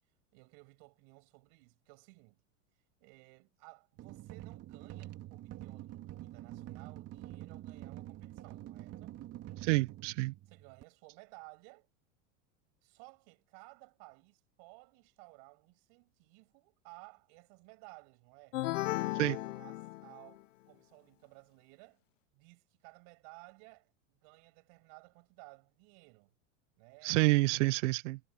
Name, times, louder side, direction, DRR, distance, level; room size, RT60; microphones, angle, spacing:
voice 1, 0.3-2.4 3.0-9.2 10.5-11.9 12.8-18.6 18.9-22.0 22.3-26.3 26.8-27.4, right 39 dB, 60° right, 7.9 m, -57 dB
sound 1, 4.0-10.8, right 14 dB, 40° right, 2.3 m, -47 dB
voice 2, 9.6-10.3 19.2-19.4 27.0-28.2, right 21 dB, 75° right, 0.6 m, -28 dB
sound 2, 18.5-20.4, left 17 dB, 85° left, 0.7 m, -35 dB
hypercardioid pair, 110°, 37 cm